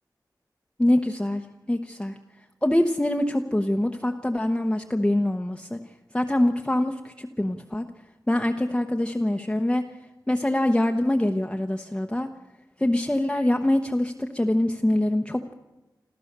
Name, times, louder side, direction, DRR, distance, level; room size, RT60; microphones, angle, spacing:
voice 1, 0.8-2.2 2.6-5.8 6.1-7.9 8.3-9.8 10.3-12.3 12.8-15.5, left 1 dB, 10° left, 4 dB, 1.0 m, -24 dB
27.0 x 14.5 x 6.7 m, 1.1 s
wide cardioid pair, 80°, 8 cm